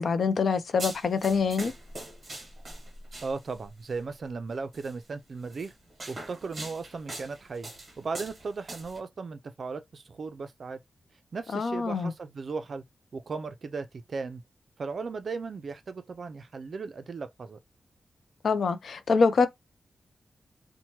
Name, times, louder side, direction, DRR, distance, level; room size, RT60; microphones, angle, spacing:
voice 1, 0.0-1.7 11.5-12.1 18.4-19.5, left 5 dB, 65° left, 0.4 m, -25 dB
sound 1, 0.8-3.7 4.7-4.9 5.5-9.0, right 2 dB, 30° right, 1.1 m, -42 dB
voice 2, 3.2-5.7 6.1-7.7 8.0-10.8 11.3-12.8 13.1-14.4 14.8-17.6, right 4 dB, 50° right, 0.4 m, -36 dB
3.0 x 2.1 x 2.9 m
wide cardioid pair, 180°, 0 cm